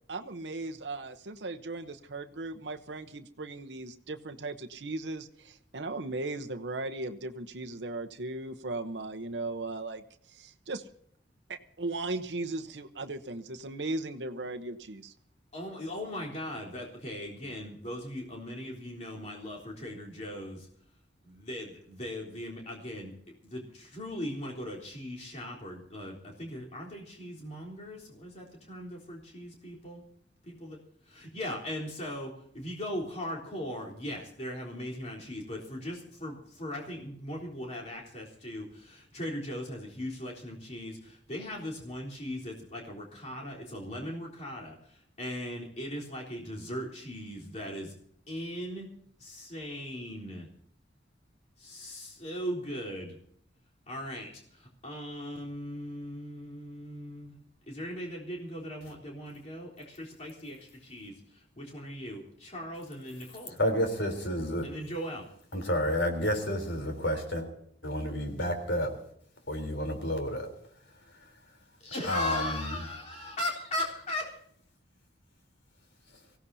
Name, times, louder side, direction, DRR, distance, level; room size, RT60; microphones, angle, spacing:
voice 1, 0.1-10.8 11.5-15.1, right 2 dB, 70° right, 0.9 m, -37 dB
voice 2, 15.5-20.7 21.2-23.1 23.4-30.0 30.4-30.8 31.1-47.9 48.3-48.9 49.2-50.5 51.6-53.2 53.9-57.4 57.7-63.6 64.6-65.3 71.8-74.4, left 1 dB, 40° left, 3.7 m, -39 dB
voice 3, 63.6-64.7 65.5-67.5 67.8-68.9 69.5-70.5 72.0-72.7, equal, 80° left, 3.6 m, -30 dB
24.0 x 16.5 x 2.7 m
head